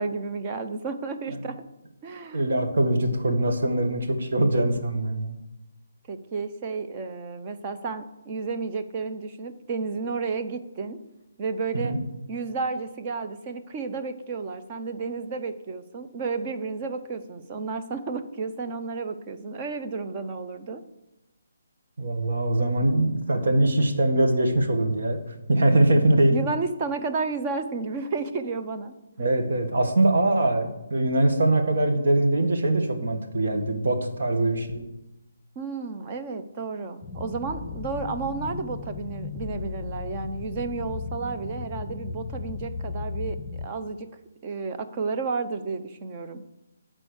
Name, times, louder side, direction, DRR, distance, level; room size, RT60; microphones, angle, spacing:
voice 1, 0.0-1.6 2.0-2.4 6.1-11.0 11.4-11.9 12.3-20.8 26.3-28.9 35.6-44.1 44.4-46.4, right 4 dB, 20° right, 7 dB, 0.7 m, -32 dB
voice 2, 2.3-5.4 11.7-12.0 22.0-25.2 25.5-26.4 29.2-34.8, right 1 dB, 65° right, 4 dB, 1.7 m, -22 dB
sound 1, 37.0-43.7, left 4 dB, 20° left, 0.6 m, -35 dB
11.0 x 4.4 x 8.0 m, 0.95 s
hypercardioid pair, 170°, 0 cm